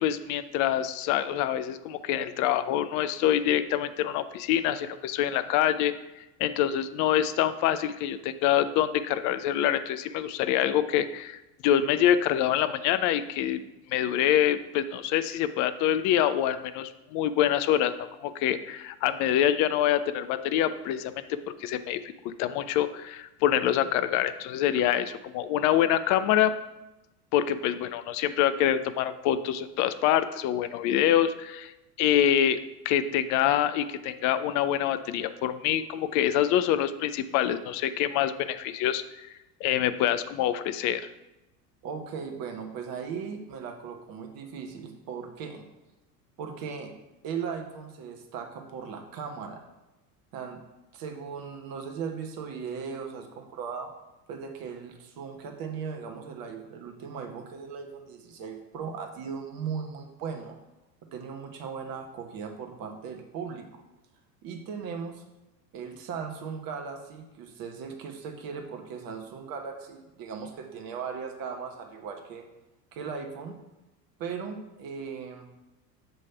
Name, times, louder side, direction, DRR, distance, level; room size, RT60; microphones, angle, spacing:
voice 1, 0.0-5.9 6.4-13.6 13.9-17.9 18.2-22.0 22.2-26.5 27.3-31.7 32.0-32.6 32.9-39.3 39.6-41.0, left 11 dB, 40° left, 12 dB, 0.4 m, -25 dB
voice 2, 41.8-45.7 46.4-46.9 47.2-49.6 50.3-50.6 50.9-53.9 54.3-60.6 61.1-63.8 64.4-65.2 65.7-72.5 72.9-73.6 74.2-75.5, right 6 dB, 45° right, 4 dB, 1.2 m, -38 dB
7.7 x 3.2 x 5.5 m, 1.0 s
hypercardioid pair, 80°, 49 cm